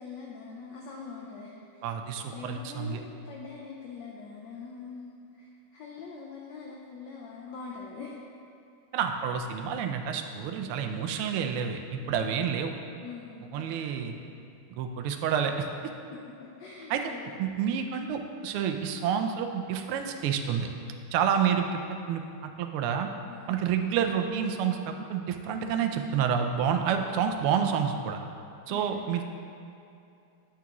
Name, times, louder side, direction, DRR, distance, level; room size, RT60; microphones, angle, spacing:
voice 1, 0.0-1.9 2.3-8.2 12.0-12.4 13.0-13.7 16.1-17.4 23.3-23.6 28.7-29.1, left 5 dB, 70° left, -2 dB, 1.1 m, -43 dB
voice 2, 1.8-3.0 8.9-12.7 13.5-14.1 14.7-15.7 16.9-17.0 17.4-20.7 21.1-21.8 22.1-23.1 23.5-28.2 28.7-29.2, right 7 dB, 85° right, 5 dB, 1.5 m, -29 dB
9.5 x 5.9 x 2.9 m, 2.7 s
omnidirectional pair, 2.4 m